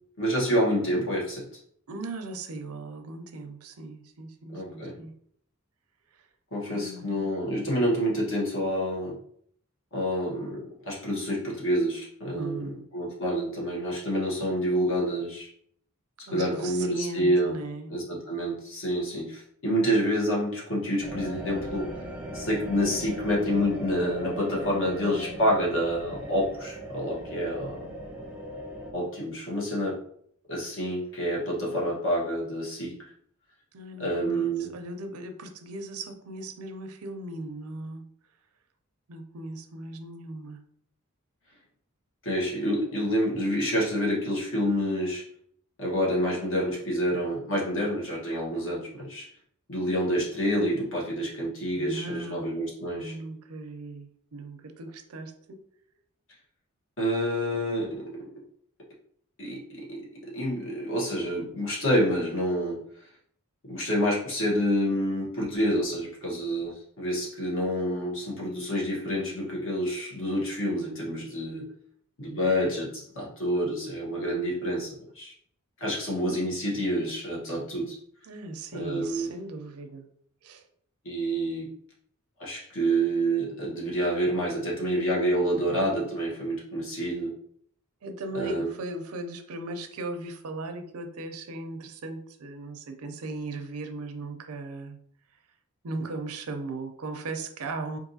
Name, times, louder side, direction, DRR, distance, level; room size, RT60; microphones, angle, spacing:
voice 1, 0.2-1.5 4.5-4.9 6.5-9.2 9.9-15.5 16.3-17.5 17.9-21.9 22.3-27.9 28.9-30.0 30.5-32.9 34.0-34.7 42.2-45.2 45.8-49.3 49.7-53.1 57.0-58.3 59.4-62.8 63.7-71.6 72.2-75.3 75.8-78.0 78.7-79.3 81.0-81.7 82.4-87.3 88.3-88.8, equal, 60° left, -4 dB, 1.4 m, -28 dB
voice 2, 1.9-5.1 6.1-6.3 6.7-7.3 12.3-12.8 16.3-17.9 33.7-38.0 39.1-40.6 51.7-52.6 53.0-55.6 78.2-80.1 80.4-80.7 88.0-95.0 95.8-98.0, right 2 dB, 90° right, 6 dB, 0.6 m, -38 dB
sound 1, 21.0-28.9, equal, 5° right, 0.5 m, -38 dB
4.6 x 2.6 x 2.7 m, 0.64 s
head